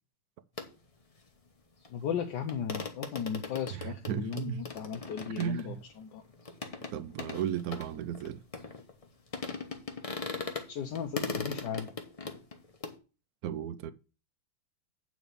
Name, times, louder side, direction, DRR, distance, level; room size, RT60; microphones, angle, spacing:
sound 1, 0.6-0.7 1.8-1.9 2.2-2.3 2.5-9.0 9.3-10.7 10.9-12.9, left 4 dB, 35° left, 0.5 m, -39 dB
voice 1, 1.9-6.2 10.7-11.9, left 7 dB, 60° left, 1.3 m, -36 dB
voice 2, 3.8-4.6 5.4-5.8 6.9-8.4 13.4-13.9, right 10 dB, 80° right, 0.8 m, -34 dB
9.1 x 4.2 x 6.7 m
omnidirectional pair, 2.4 m